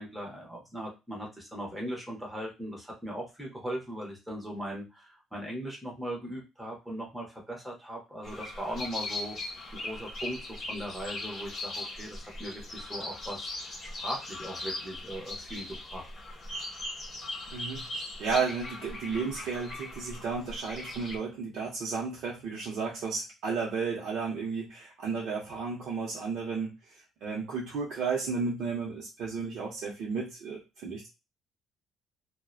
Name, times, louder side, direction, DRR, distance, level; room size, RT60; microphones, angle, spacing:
voice 1, 0.0-16.1, equal, 5° right, -2 dB, 0.7 m, -39 dB
sound 1, 8.2-21.2, left 2 dB, 35° left, 1.0 m, -39 dB
voice 2, 17.5-17.9 18.2-31.1, right 5 dB, 60° right, -3 dB, 0.7 m, -33 dB
2.6 x 2.1 x 2.3 m, 0.26 s
cardioid pair, 180°, 0 cm